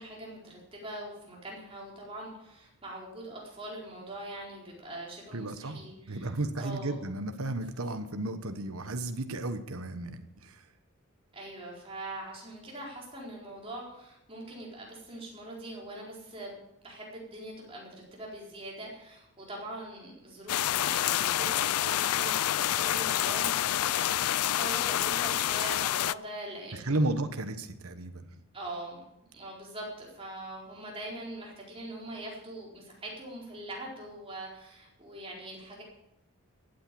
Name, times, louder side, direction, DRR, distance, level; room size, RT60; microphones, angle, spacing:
voice 1, 0.0-6.3 6.6-7.0 11.3-16.5 16.8-27.1 28.5-35.8, right 1 dB, 25° right, -3 dB, 4.3 m, -42 dB
voice 2, 5.3-10.7 26.7-28.3, right 2 dB, 80° right, 8 dB, 1.2 m, -33 dB
sound 1, 20.5-26.1, left 12 dB, 85° left, 0.4 m, -28 dB
15.5 x 9.0 x 7.6 m, 0.87 s
head